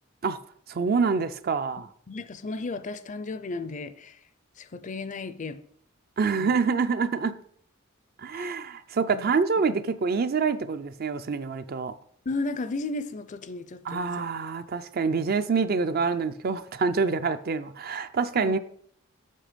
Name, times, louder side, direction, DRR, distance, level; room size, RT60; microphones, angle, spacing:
voice 1, 0.7-1.9 6.2-7.3 8.2-11.9 13.8-18.6, right 5 dB, 45° right, 0.4 m, -26 dB
voice 2, 2.1-4.2 4.6-5.6 6.4-6.5 8.3-8.6 9.1-9.3 12.3-14.1 18.3-18.5, left 3 dB, 35° left, 0.5 m, -34 dB
7.6 x 6.0 x 5.1 m
head